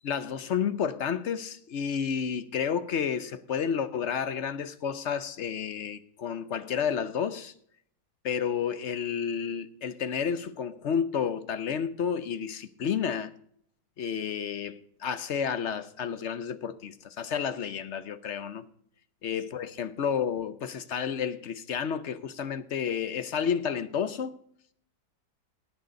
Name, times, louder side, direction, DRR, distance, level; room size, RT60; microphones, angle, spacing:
voice 1, 0.0-7.5 8.2-13.3 14.0-18.6 19.2-24.4, left 7 dB, 55° left, 0.9 m, -31 dB
18.0 x 6.5 x 5.3 m
omnidirectional pair, 1.8 m